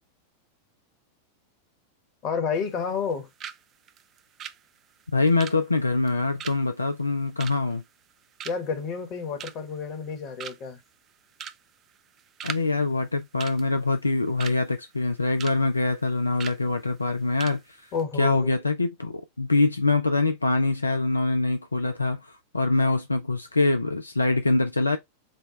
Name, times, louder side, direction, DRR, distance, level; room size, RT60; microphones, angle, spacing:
voice 1, 2.2-3.3 8.4-10.8 17.9-18.5, left 6 dB, 35° left, 1.2 m, -30 dB
sound 1, 2.5-3.1 3.4-3.6 3.9-8.1 8.4-8.8 9.2-9.8 10.1-10.2 10.4-10.8 11.3-11.6 11.9-12.6 12.9-13.1 13.4-14.6 15.0-15.6 15.8-16.0 16.4-16.6 17.0-17.1 17.4-17.6 17.9-18.0, right 9 dB, 30° right, 0.4 m, -39 dB
voice 2, 5.1-7.8 12.4-17.8 18.2-25.0, left 3 dB, 80° left, 0.4 m, -24 dB
4.4 x 2.1 x 3.0 m
figure-of-eight pair, 90°, 0 cm